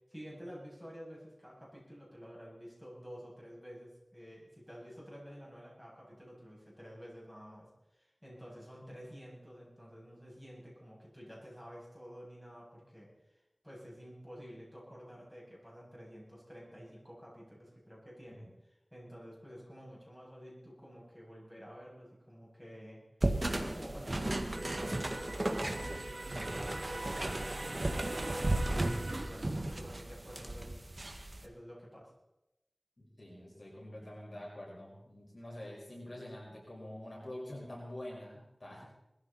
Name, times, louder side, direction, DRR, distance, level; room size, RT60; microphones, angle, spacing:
voice 1, 0.1-7.7 7.9-23.0 23.6-30.8 31.4-32.1, equal, ahead, -5 dB, 7.9 m, -51 dB
sound 1, 23.2-31.4, right 1 dB, 45° right, 1.7 m, -35 dB
sound 2, 24.5-29.5, right 2 dB, 65° right, 2.3 m, -42 dB
voice 2, 33.0-38.8, left 1 dB, 50° left, -3 dB, 5.7 m, -46 dB
21.0 x 14.5 x 4.4 m, 0.92 s
wide cardioid pair, 60°, 0 cm